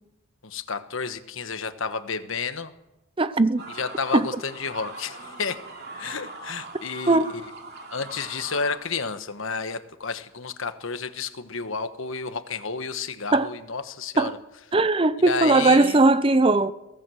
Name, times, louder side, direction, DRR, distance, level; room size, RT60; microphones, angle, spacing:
voice 1, 0.4-2.7 3.7-5.7 5.9-7.2 7.9-14.4 15.2-16.0, left 5 dB, 70° left, 1.3 m, -31 dB
voice 2, 3.2-3.6 4.1-4.3 7.1-7.3 13.3-13.5 14.2-14.3 14.7-16.7, right 2 dB, 25° right, 0.6 m, -19 dB
sound 1, 3.6-8.8, right 2 dB, 50° right, 2.9 m, -41 dB
23.0 x 17.5 x 6.4 m
head